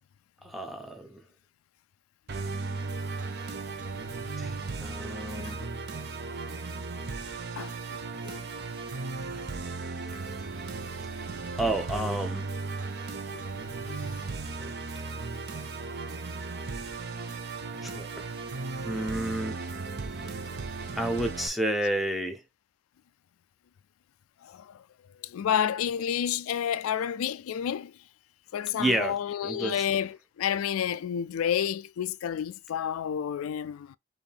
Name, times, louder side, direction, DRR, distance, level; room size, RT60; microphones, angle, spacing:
voice 1, 0.4-1.2 4.4-5.6 11.6-12.5 14.6-14.7 17.8-18.3 18.8-19.6 20.9-22.4 28.8-29.9, right 1 dB, ahead, 0.6 m, -31 dB
Musical instrument, 2.3-21.5, right 3 dB, 50° right, 0.6 m, -36 dB
voice 2, 5.4-5.7 7.6-7.7 8.2-8.4 13.3-13.4 13.8-14.0 24.4-24.8 25.2-27.9 28.5-34.0, left 9 dB, 90° left, 0.3 m, -30 dB
4.7 x 2.7 x 3.3 m
head